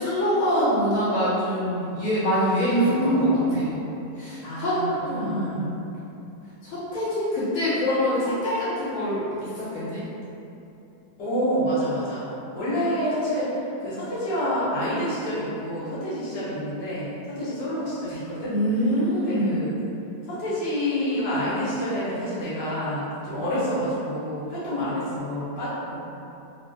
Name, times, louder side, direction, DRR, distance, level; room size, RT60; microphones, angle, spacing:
voice 1, 0.0-3.7 4.2-5.8 6.6-10.0 18.5-19.6, equal, 55° left, -12 dB, 1.3 m, -25 dB
voice 2, 2.7-3.7 4.4-4.8 5.1-5.7 11.2-12.3 12.5-13.5 13.8-18.5 19.2-19.7 20.3-26.0, equal, 80° left, -11 dB, 1.5 m, -27 dB
3.4 x 2.5 x 2.3 m, 2.8 s
omnidirectional pair, 1.8 m